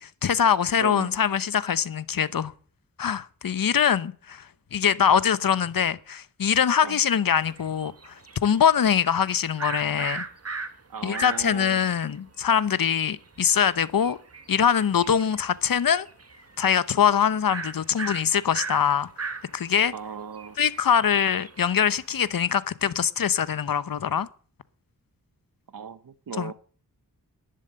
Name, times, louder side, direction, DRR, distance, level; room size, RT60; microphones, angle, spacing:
voice 1, 0.0-2.5 3.0-4.4 4.7-8.1 8.4-10.2 11.0-14.2 14.5-16.1 16.6-19.1 19.5-19.9 20.6-24.3 26.4-26.5, left 8 dB, 65° left, 0.9 m, -23 dB
voice 2, 0.8-1.2 6.8-7.0 10.9-11.8 19.9-20.6 25.7-26.5, right 6 dB, 65° right, 1.1 m, -37 dB
sound 1, 7.5-11.7 12.1-12.2 12.4-15.5 15.8-16.7 17.0-17.1 17.5-22.2, right 4 dB, 40° right, 1.8 m, -37 dB
11.5 x 10.5 x 7.9 m
wide cardioid pair, 100°, 36 cm